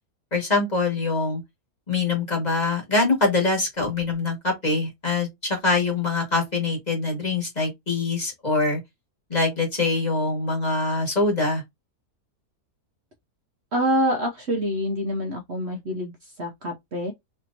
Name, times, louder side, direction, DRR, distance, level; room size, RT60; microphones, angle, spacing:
voice 1, 0.3-1.4 1.9-8.8 9.3-11.6, left 3 dB, 30° left, 1.4 m, -24 dB
voice 2, 13.7-17.1, equal, 55° right, 0.9 m, -26 dB
3.3 x 2.9 x 2.5 m
omnidirectional pair, 1.6 m